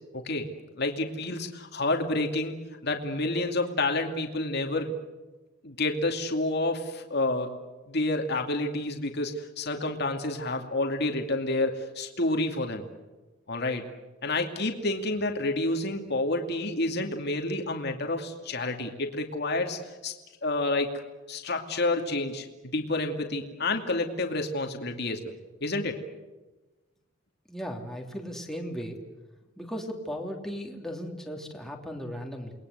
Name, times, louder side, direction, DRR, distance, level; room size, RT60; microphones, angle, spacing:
voice 1, 0.1-0.5 0.8-2.6 2.8-4.9 5.6-7.5 7.9-12.9 13.5-13.9 14.2-20.1 20.4-20.9 21.3-25.3 25.6-26.0, left 2 dB, 55° left, 3 dB, 2.5 m, -29 dB
voice 2, 27.5-29.0 29.6-32.5, equal, ahead, 1 dB, 3.1 m, -36 dB
29.0 x 21.0 x 8.1 m, 1.1 s
head